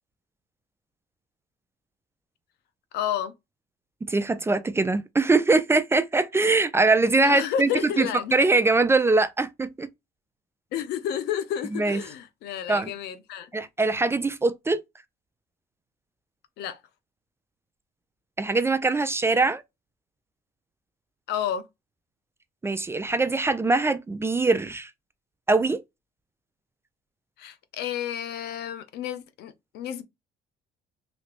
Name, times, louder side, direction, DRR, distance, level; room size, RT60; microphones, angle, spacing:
voice 1, 2.9-3.3 7.2-8.4 10.7-13.5 16.6-16.8 21.3-21.7 27.4-30.0, left 9 dB, 80° left, 0.6 m, -31 dB
voice 2, 4.0-9.9 11.7-12.0 12.7-12.9 13.5-14.8 18.4-19.6 22.6-24.9 25.5-25.8, right 3 dB, 15° right, 0.3 m, -22 dB
3.1 x 2.9 x 2.9 m
cardioid pair, 110°, 17 cm